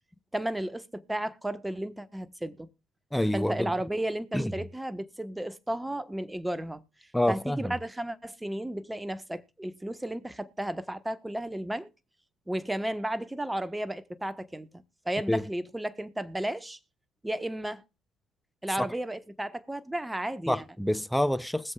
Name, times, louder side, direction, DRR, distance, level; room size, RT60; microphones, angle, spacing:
voice 1, 0.3-2.7 3.3-11.9 12.5-16.8 17.2-17.8 18.6-20.6, right 1 dB, 10° right, 1.2 m, -33 dB
voice 2, 3.1-3.7 4.3-4.6 7.1-7.7 15.3-15.5 20.5-21.7, left 1 dB, 5° left, 0.7 m, -27 dB
21.0 x 7.5 x 2.4 m
hypercardioid pair, 55°, 0 cm